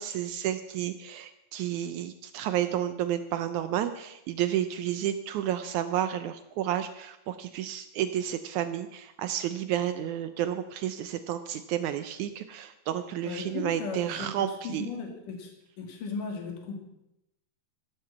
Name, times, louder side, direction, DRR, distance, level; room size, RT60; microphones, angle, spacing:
voice 1, 0.0-14.9, right 11 dB, 85° right, 10 dB, 1.7 m, -31 dB
voice 2, 13.2-14.3 14.6-15.5 15.8-16.8, left 4 dB, 60° left, 2 dB, 4.1 m, -36 dB
15.0 x 13.0 x 5.9 m, 0.86 s
omnidirectional pair, 4.4 m